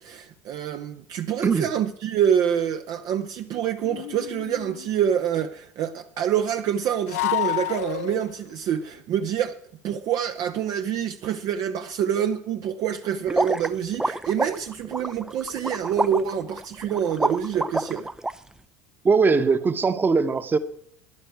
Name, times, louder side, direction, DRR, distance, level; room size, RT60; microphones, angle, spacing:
voice 1, 0.0-9.6 9.8-18.1, right 9 dB, 50° right, 0.7 m, -26 dB
sound 1, 3.8-4.9 7.1-8.5, left 16 dB, 65° left, 0.4 m, -29 dB
sound 2, 13.3-18.3, right 2 dB, 5° right, 0.5 m, -28 dB
voice 2, 19.0-20.6, right 4 dB, 25° right, 1.1 m, -20 dB
10.0 x 9.6 x 7.8 m
figure-of-eight pair, 70°, 9 cm